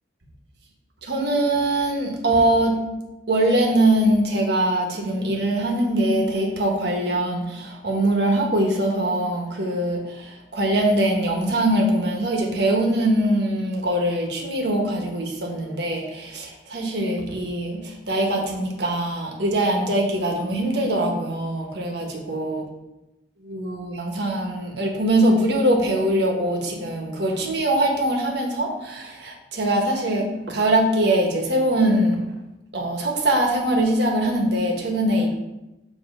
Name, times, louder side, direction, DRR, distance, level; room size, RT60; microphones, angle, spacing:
voice 1, 1.0-2.8 3.3-22.6 23.4-32.2 32.7-35.4, right 1 dB, 65° right, 1 dB, 1.3 m, -22 dB
7.3 x 3.1 x 5.4 m, 0.97 s
head